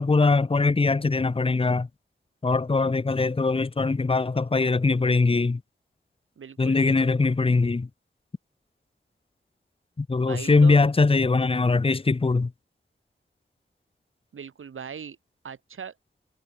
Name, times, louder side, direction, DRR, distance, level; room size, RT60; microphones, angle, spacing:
voice 1, 0.0-1.9 2.4-5.6 6.6-7.9 10.0-12.5, left 3 dB, 25° left, 0.7 m, -22 dB
voice 2, 6.4-7.1 10.3-10.8 14.3-15.2 15.4-15.9, right 7 dB, 90° right, 1.3 m, -39 dB
wide cardioid pair, 65°, 20 cm